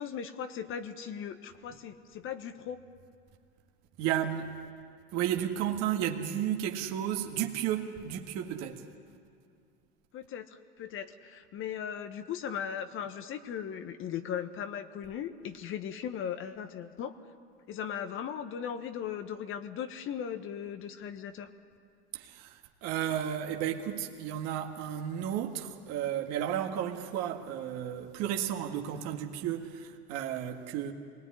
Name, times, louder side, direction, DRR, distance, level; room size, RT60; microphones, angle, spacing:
voice 1, 0.0-2.8 10.1-17.2 17.7-21.5, left 8 dB, 35° left, 1.3 m, -38 dB
voice 2, 4.0-4.5 5.1-8.9 22.1-30.9, right 10 dB, 50° right, 1.9 m, -33 dB
25.5 x 19.5 x 9.9 m
hypercardioid pair, 100°, 34 cm